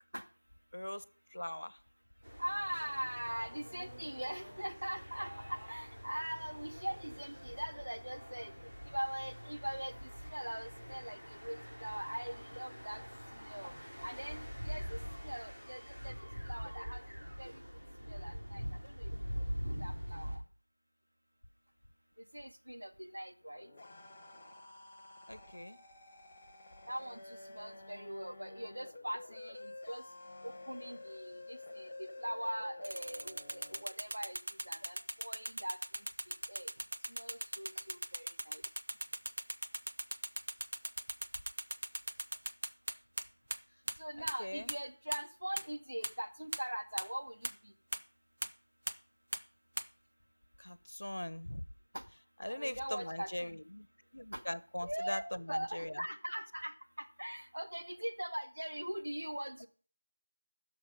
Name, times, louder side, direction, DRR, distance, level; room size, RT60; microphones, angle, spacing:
voice 1, 0.7-1.0 1.3-1.8 25.3-25.8 38.6-38.7 44.2-44.7 50.6-51.6 52.4-53.9 54.1-56.0, left 1 dB, 65° left, 16 dB, 1.2 m, -41 dB
sound 1, 2.2-20.4, equal, 15° right, 3.4 m, -44 dB
voice 2, 2.4-8.5 8.8-13.0 13.3-13.7 14.0-17.0 17.4-17.6 18.0-19.1 19.6-20.4 22.3-23.7 26.9-30.0 30.4-34.4 34.6-36.7 37.1-38.6 44.0-47.7 51.9-52.0 52.5-53.6 54.3-54.4 54.8-55.2 55.5-59.7, equal, 75° right, 5 dB, 2.1 m, -42 dB
sound 2, 23.4-33.8, left 2 dB, 10° left, 0.6 m, -51 dB
sound 3, 32.8-43.2 43.5-43.6 43.9-44.0 44.3-44.4 44.7-44.8 45.1-45.2 45.6-45.7 46.0-46.1 46.5-46.6 47.0-47.1 47.4-47.5 47.9-48.0 48.4-48.5 48.9-49.0 49.3-49.4 49.8-49.9, right 1 dB, 35° right, 0.8 m, -38 dB
15.5 x 6.7 x 5.8 m, 0.42 s
figure-of-eight pair, 180°, 0 cm